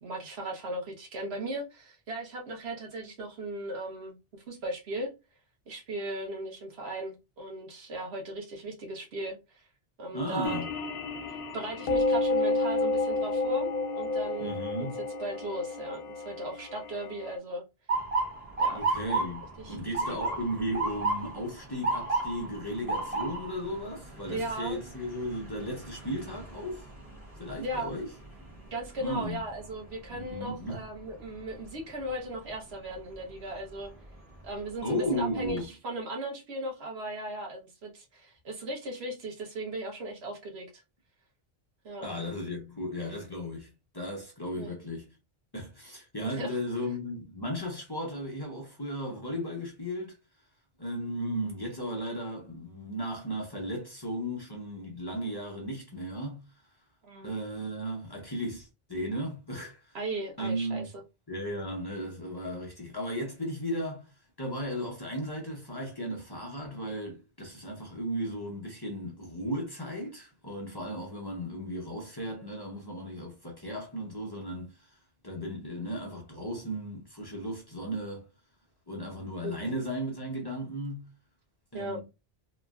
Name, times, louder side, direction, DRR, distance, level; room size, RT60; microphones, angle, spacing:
voice 1, 0.0-5.1 5.7-9.7 10.0-10.6 11.5-13.7 14.0-17.6 18.6-18.8 19.6-19.8 20.1-20.3 24.3-24.8 27.6-27.9 28.7-33.9 34.4-40.8 41.8-42.1 44.6-44.7 46.2-46.6 57.0-57.3 59.9-61.0 79.4-79.7 81.7-82.0, right 1 dB, 85° right, 1.1 m, -37 dB
voice 2, 10.1-10.7 14.4-15.0 18.7-26.9 27.4-28.1 29.0-29.4 30.1-30.8 34.8-35.7 42.0-43.7 43.9-45.1 45.5-50.2 50.8-56.4 57.2-60.0 60.4-60.9 61.3-78.3 78.9-81.1 81.7-82.0, equal, 25° left, 0.6 m, -35 dB
sound 1, 10.4-17.4, left 2 dB, 65° left, 0.7 m, -30 dB
Motor vehicle (road) / Siren, 17.9-29.8 30.2-30.7 31.5-31.8 33.6-33.9 34.4-34.5 34.9-35.6, right 3 dB, 35° right, 1.0 m, -34 dB
3.0 x 2.4 x 2.2 m
omnidirectional pair, 1.0 m